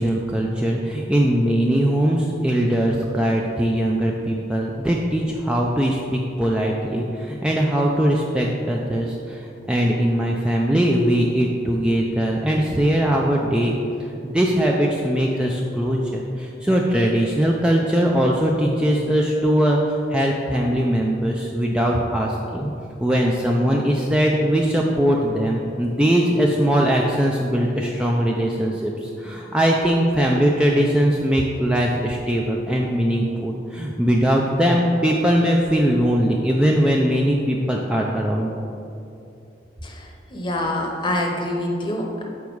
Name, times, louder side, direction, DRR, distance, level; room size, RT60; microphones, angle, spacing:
voice 1, 0.0-13.8 14.2-22.7 23.0-38.5, equal, 5° right, -2 dB, 0.3 m, -20 dB
voice 2, 39.8-42.2, left 1 dB, 25° left, 1 dB, 0.8 m, -26 dB
7.1 x 4.6 x 4.6 m, 2.7 s
head